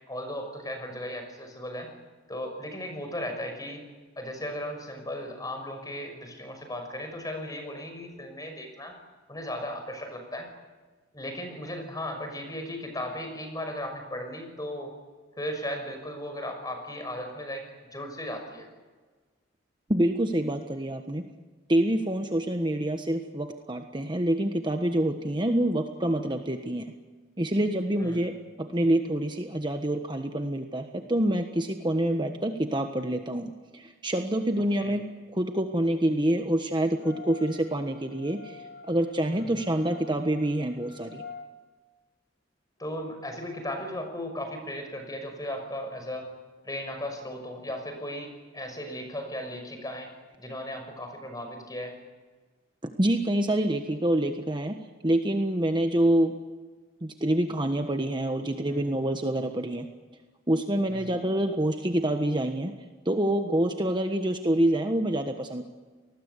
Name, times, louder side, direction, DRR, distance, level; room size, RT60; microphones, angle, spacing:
voice 1, 0.1-1.9 2.3-3.8 4.2-8.9 9.3-10.5 11.1-14.9 15.4-17.6 17.9-18.7 28.0-28.2 34.8-35.0 39.3-39.5 42.8-46.3 46.6-50.1 50.4-51.9 58.7-58.9 60.9-61.1, left 1 dB, 20° left, 5 dB, 6.1 m, -36 dB
voice 2, 19.9-21.2 21.7-26.9 27.4-28.3 28.6-35.0 35.3-41.2 53.0-54.8 55.0-56.3 57.0-59.9 60.5-62.7 63.0-65.7, right 1 dB, 25° right, 5 dB, 1.3 m, -26 dB
sound 1, 37.0-41.5, left 5 dB, 60° left, 3.1 m, -47 dB
28.5 x 20.0 x 8.3 m, 1.3 s
head